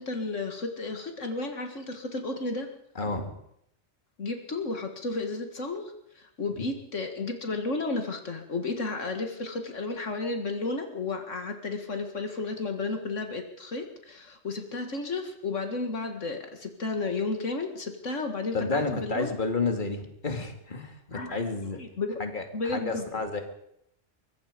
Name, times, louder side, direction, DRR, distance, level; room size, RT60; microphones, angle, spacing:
voice 1, 0.0-2.7 4.2-19.3 21.1-21.4 21.7-22.2 22.5-23.1, left 3 dB, 75° left, 5 dB, 2.2 m, -33 dB
voice 2, 3.0-3.3 18.5-21.8 22.2-23.4, left 3 dB, 40° left, 5 dB, 2.6 m, -31 dB
24.0 x 22.5 x 5.2 m, 0.76 s
omnidirectional pair, 1.3 m